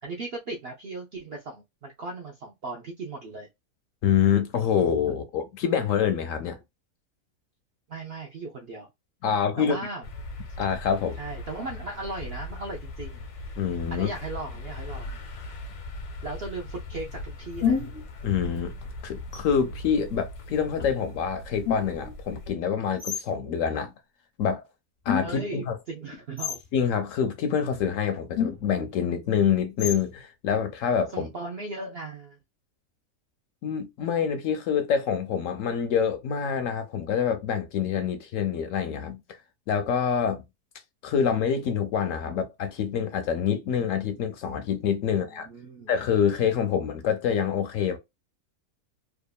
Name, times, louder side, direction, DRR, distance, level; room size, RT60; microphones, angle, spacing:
voice 1, 0.0-3.5 7.9-8.9 9.6-10.1 11.2-13.2 13.9-15.2 16.2-17.8 25.2-26.6 31.1-32.4 45.1-45.9, right 2 dB, 60° right, 0.6 m, -37 dB
voice 2, 4.0-6.6 9.2-9.8 10.6-11.2 13.6-14.1 18.2-18.7 19.0-23.9 24.4-24.6 25.1-25.8 26.7-31.3 33.6-39.2 39.7-40.4 41.0-45.5 45.9-48.0, left 7 dB, 70° left, 0.8 m, -26 dB
sound 1, 10.0-22.5, left 2 dB, 85° left, 1.2 m, -39 dB
sound 2, 17.6-18.1 19.3-19.9 20.8-21.0 21.6-22.2 23.0-23.3 25.0-25.6 26.4-26.7 27.8-27.9 28.3-29.0 29.8-30.2, left 7 dB, 40° left, 0.6 m, -30 dB
2.8 x 2.4 x 2.2 m
omnidirectional pair, 1.6 m